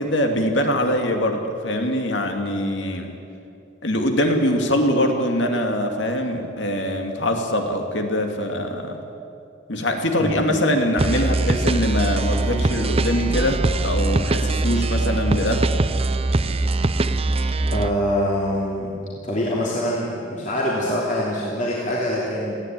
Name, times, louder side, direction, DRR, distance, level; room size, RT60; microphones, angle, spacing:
voice 1, 0.0-3.1 3.8-9.0 9.7-15.7, left 1 dB, 70° left, 4 dB, 2.4 m, -23 dB
voice 2, 10.2-10.6 17.7-18.9 19.2-22.6, equal, 40° left, -5 dB, 3.0 m, -24 dB
sound 1, 11.0-17.9, right 2 dB, 30° right, 0.6 m, -22 dB
19.5 x 15.5 x 9.0 m, 2.6 s
head